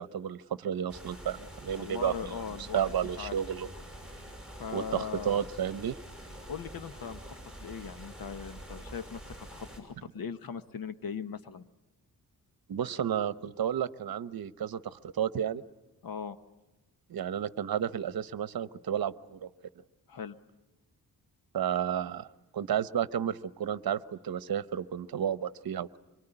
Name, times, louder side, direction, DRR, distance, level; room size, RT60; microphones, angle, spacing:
voice 1, 0.0-2.4 2.7-3.7 4.7-6.0 12.7-15.6 17.1-19.5 21.5-26.0, right 9 dB, 70° right, 15 dB, 0.9 m, -32 dB
sound 1, 0.9-9.8, right 1 dB, ahead, 6.0 m, -46 dB
voice 2, 1.7-2.8 3.2-3.3 4.6-5.5 6.5-7.4 7.6-11.7 12.8-13.0 16.0-16.4 20.1-20.4, left 7 dB, 65° left, 12 dB, 1.1 m, -39 dB
25.5 x 23.5 x 9.9 m, 0.98 s
wide cardioid pair, 165°, 38 cm